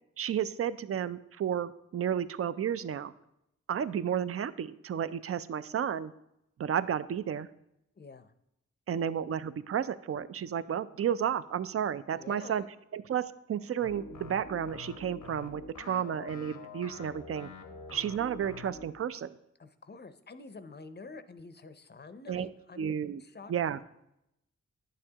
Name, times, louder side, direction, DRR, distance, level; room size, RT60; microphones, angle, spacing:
voice 1, 0.2-3.1 3.7-6.1 6.6-7.5 8.9-12.6 12.9-17.5 17.9-19.3 22.3-22.5 22.8-23.2 23.5-23.8, right 9 dB, 50° right, 15 dB, 0.4 m, -32 dB
voice 2, 8.0-8.3 12.2-12.7 19.6-23.5, left 3 dB, 35° left, 11 dB, 0.6 m, -48 dB
sound 1, 13.8-18.9, left 4 dB, 85° left, 0.8 m, -46 dB
8.9 x 6.7 x 2.8 m, 0.82 s
cardioid pair, 45°, 30 cm